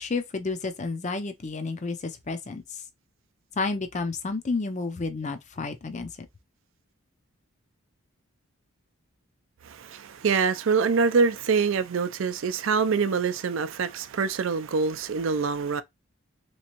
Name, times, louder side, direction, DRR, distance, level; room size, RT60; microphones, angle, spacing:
voice 1, 0.0-2.8 3.5-6.1, left 3 dB, 35° left, 0.5 m, -31 dB
voice 2, 9.6-15.8, right 5 dB, 65° right, 0.4 m, -25 dB
3.4 x 3.0 x 2.9 m
head